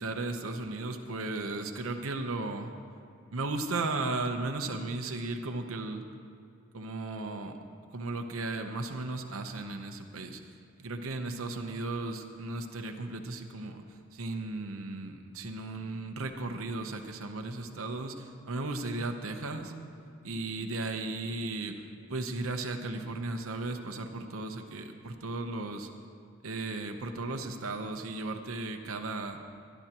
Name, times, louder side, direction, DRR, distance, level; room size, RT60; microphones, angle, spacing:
voice 1, 0.0-2.7 3.3-6.0 6.7-7.6 7.9-10.4 10.8-13.8 14.1-19.7 20.2-21.7 22.1-25.9 26.4-29.4, right 2 dB, 75° right, 5 dB, 0.9 m, -35 dB
22.5 x 11.5 x 3.0 m, 2.5 s
head